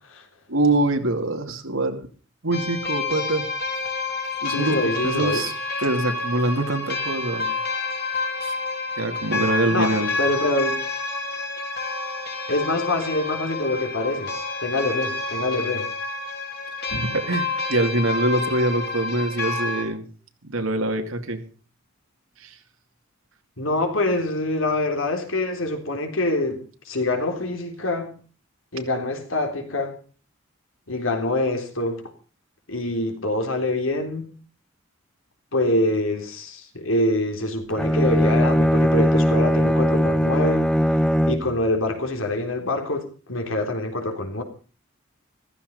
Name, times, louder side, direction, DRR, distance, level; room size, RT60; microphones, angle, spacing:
voice 1, 0.5-2.0 2.4-3.5 4.4-4.8 5.0-5.5 5.8-7.6 8.4-8.5 9.0-10.1 16.9-20.1 20.4-21.4 22.4-22.6, right 2 dB, 80° right, 2.5 m, -24 dB
sound 1, 2.5-19.9, left 3 dB, 50° left, 3.6 m, -29 dB
voice 2, 4.5-5.4 9.7-10.8 12.5-14.3 14.6-15.9 23.6-28.2 28.7-30.0 30.9-32.0 32.7-34.3 35.5-40.7 41.3-44.4, left 2 dB, 75° left, 3.7 m, -25 dB
Bowed string instrument, 37.7-41.6, equal, 5° left, 0.8 m, -19 dB
15.0 x 14.5 x 5.4 m
head